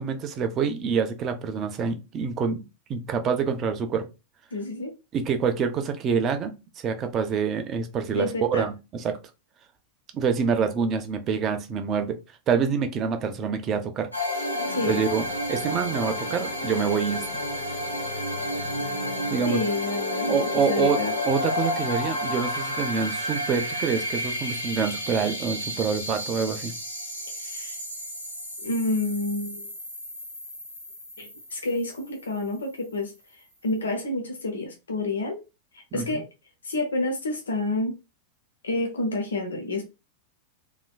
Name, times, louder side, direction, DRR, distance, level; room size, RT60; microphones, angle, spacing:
voice 1, 0.0-2.6 2.9-4.1 5.1-6.5 6.8-9.2 10.1-12.2 12.5-14.1 14.3-14.4 14.8-17.2 19.3-19.6 20.3-21.0 21.2-26.7 35.9-36.2, right 6 dB, 30° right, 0.6 m, -26 dB
voice 2, 4.5-4.9 8.1-8.7 14.7-15.0 19.4-21.1 27.3-27.8 28.6-29.7 31.2-35.4 35.7-36.2 36.6-38.0 38.6-39.8, left 2 dB, 70° left, 0.8 m, -29 dB
sound 1, 14.1-32.6, left 1 dB, 85° left, 1.1 m, -31 dB
3.3 x 2.9 x 2.3 m
figure-of-eight pair, 90°, 0 cm